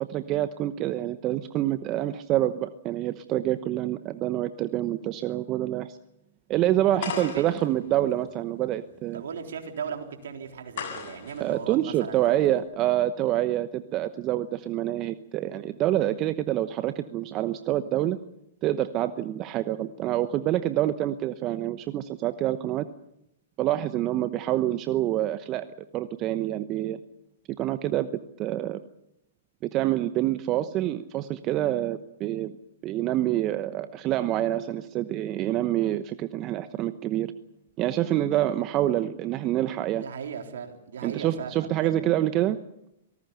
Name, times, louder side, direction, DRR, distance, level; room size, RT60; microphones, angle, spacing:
voice 1, 0.0-6.0 6.5-9.2 11.4-18.2 18.6-22.9 23.6-25.7 25.9-27.0 27.6-28.1 28.4-28.8 29.7-32.5 32.8-37.3 37.8-40.0 41.0-42.6, right 13 dB, 35° right, 11 dB, 1.0 m, -27 dB
voice 2, 6.9-7.5 9.1-12.4 40.0-42.1, right 7 dB, 70° right, 4 dB, 3.7 m, -37 dB
sound 1, 7.0-12.6, left 7 dB, 60° left, 7.8 m, -40 dB
25.5 x 18.5 x 6.9 m, 0.81 s
hypercardioid pair, 115°, 0 cm